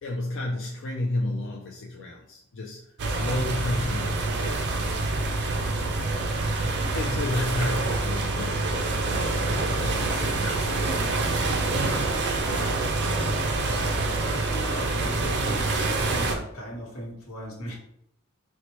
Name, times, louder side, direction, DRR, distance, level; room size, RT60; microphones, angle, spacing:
voice 1, 0.0-4.6 6.9-11.0, left 2 dB, 60° left, -1 dB, 0.4 m, -32 dB
sound 1, 3.0-16.4, right 2 dB, 55° right, 0.5 m, -26 dB
voice 2, 13.6-17.7, right 1 dB, 85° left, -3 dB, 1.1 m, -38 dB
4.1 x 2.1 x 3.0 m, 0.78 s
head